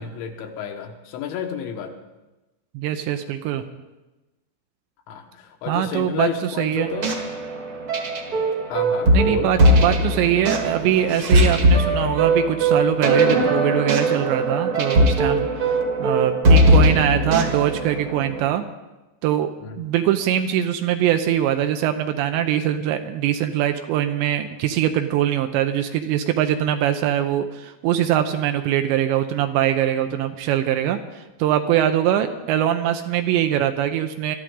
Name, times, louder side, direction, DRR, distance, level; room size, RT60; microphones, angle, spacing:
voice 1, 0.0-2.0 5.1-7.1 8.7-9.5 19.6-19.8, left 8 dB, 85° left, 4 dB, 3.6 m, -31 dB
voice 2, 2.7-3.6 5.7-6.9 9.1-18.6 19.2-19.5 19.8-34.4, right 11 dB, 80° right, 7 dB, 2.9 m, -22 dB
sound 1, 6.8-18.4, right 1 dB, 50° right, 1.5 m, -19 dB
23.0 x 13.5 x 3.8 m, 1.1 s
omnidirectional pair, 5.3 m